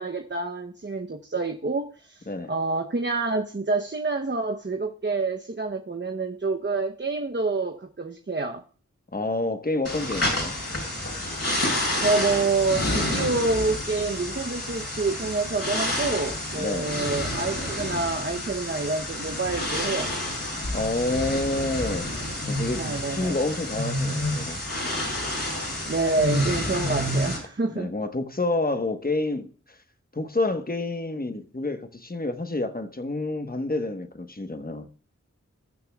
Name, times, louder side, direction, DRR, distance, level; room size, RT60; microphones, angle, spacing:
voice 1, 0.0-8.6 12.0-20.1 22.8-23.4 25.5-27.9, right 3 dB, 35° right, 0.8 m, -27 dB
voice 2, 9.1-10.5 16.6-17.0 20.7-22.1 22.5-24.6 27.7-29.5 30.1-34.9, left 2 dB, 30° left, 1.2 m, -28 dB
sound 1, 9.8-27.4, left 1 dB, 55° left, 5.8 m, -29 dB
20.0 x 6.8 x 2.3 m
wide cardioid pair, 45°, 31 cm